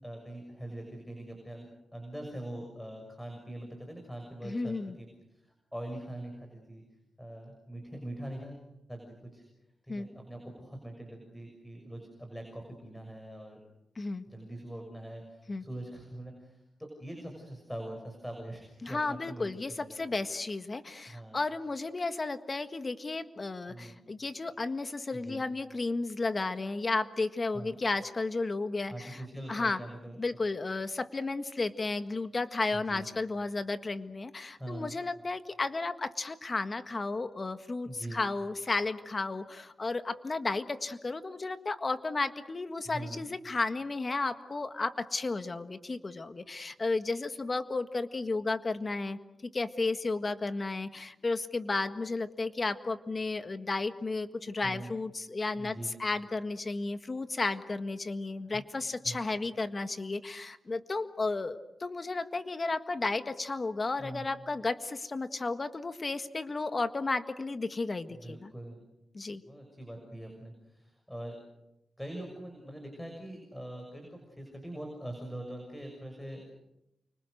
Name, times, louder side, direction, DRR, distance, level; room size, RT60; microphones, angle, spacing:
voice 1, 0.0-5.4 5.7-6.8 7.2-9.4 9.9-13.6 14.3-20.0 21.1-21.4 23.7-24.0 25.1-25.4 27.5-27.7 28.9-30.2 32.7-33.0 34.5-34.9 37.8-38.2 42.8-43.2 54.6-54.9 55.6-55.9 58.4-58.6 59.0-59.2 64.0-64.2 68.1-68.8 69.5-71.4 72.0-76.5, right 1 dB, 5° left, 3 dB, 6.4 m, -43 dB
voice 2, 4.4-4.9 9.9-10.1 13.9-14.2 15.5-15.6 18.8-29.2 29.5-29.8 30.2-68.5 69.1-69.4, left 3 dB, 40° left, 10 dB, 1.7 m, -33 dB
29.5 x 25.0 x 6.6 m, 0.88 s
cardioid pair, 75°, 0 cm